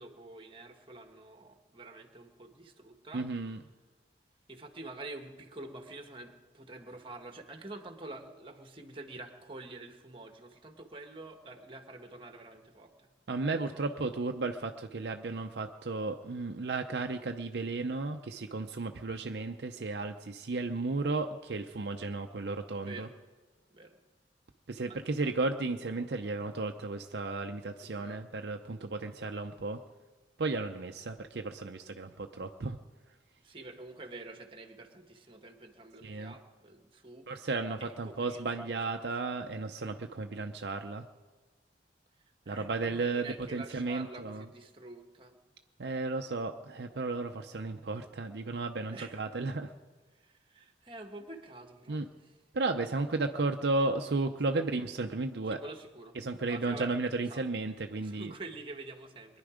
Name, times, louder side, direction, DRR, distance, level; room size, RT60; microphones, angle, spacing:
voice 1, 0.0-3.3 4.5-13.1 13.7-14.0 22.8-23.1 23.7-24.0 24.9-25.4 27.8-28.2 33.4-37.5 37.8-39.3 42.4-45.4 48.9-49.2 50.1-52.3 52.6-52.8 54.5-54.6 55.5-56.1 56.5-56.9 57.2-57.4 58.0-59.4, right 2 dB, 30° right, 5 dB, 1.4 m, -47 dB
voice 2, 3.1-3.6 13.3-23.1 24.7-29.8 30.4-32.8 36.0-36.3 37.3-41.0 42.5-44.4 45.8-49.7 51.9-52.0 52.5-55.6 56.2-58.3, right 3 dB, 65° right, 5 dB, 0.6 m, -34 dB
22.5 x 10.5 x 5.0 m, 1.3 s
head